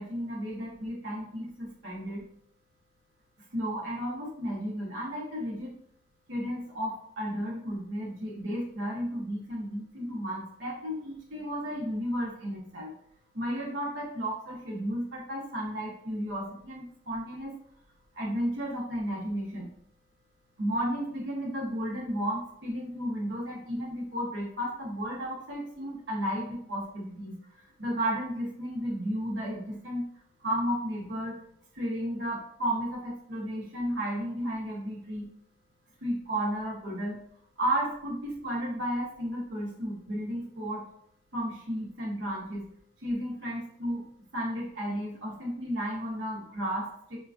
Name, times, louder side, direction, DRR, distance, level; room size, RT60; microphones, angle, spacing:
voice 1, 0.0-2.2 3.5-5.7 6.3-12.9 13.3-17.5 18.1-19.7 20.6-27.4 27.8-30.0 30.4-31.4 31.7-35.3 36.0-37.2 37.6-40.9 41.3-42.7 43.0-44.0 44.3-47.2, equal, 80° right, -2 dB, 0.9 m, -33 dB
3.7 x 2.3 x 2.4 m, 0.66 s
head